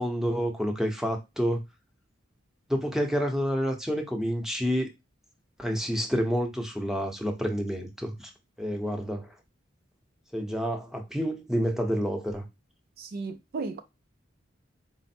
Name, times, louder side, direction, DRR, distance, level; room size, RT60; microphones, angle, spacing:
voice 1, 0.0-1.6 2.7-4.9 5.6-8.3 8.6-9.3 10.3-12.4, equal, ahead, 0.7 m, -29 dB
voice 2, 13.0-13.8, right 4 dB, 55° right, 0.4 m, -35 dB
4.2 x 2.1 x 4.2 m
head